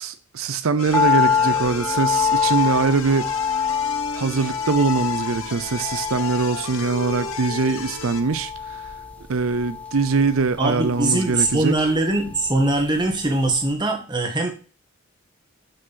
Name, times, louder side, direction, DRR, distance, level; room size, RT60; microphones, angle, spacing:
voice 1, 0.0-3.3 4.1-8.9 9.3-11.7, right 4 dB, 80° right, 0.6 m, -22 dB
sound 1, 0.8-8.2, left 4 dB, 75° left, 0.9 m, -34 dB
sound 2, 0.9-13.2 13.5-13.6, left 6 dB, 5° left, 0.6 m, -26 dB
voice 2, 10.6-14.5, right 2 dB, 20° right, 1.6 m, -22 dB
6.0 x 5.1 x 5.7 m
head